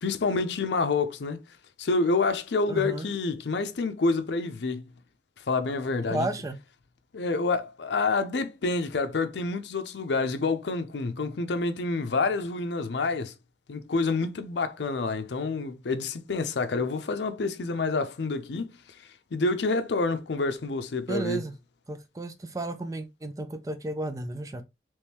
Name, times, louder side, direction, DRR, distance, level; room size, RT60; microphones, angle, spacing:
voice 1, 0.0-1.4 1.8-4.9 5.5-6.3 7.1-13.3 13.7-18.7 19.3-21.5, left 3 dB, 80° left, 0.5 m, -28 dB
voice 2, 2.7-3.1 6.1-6.6 21.1-21.5 21.9-24.6, right 2 dB, 20° right, 0.4 m, -33 dB
3.5 x 3.1 x 2.9 m
head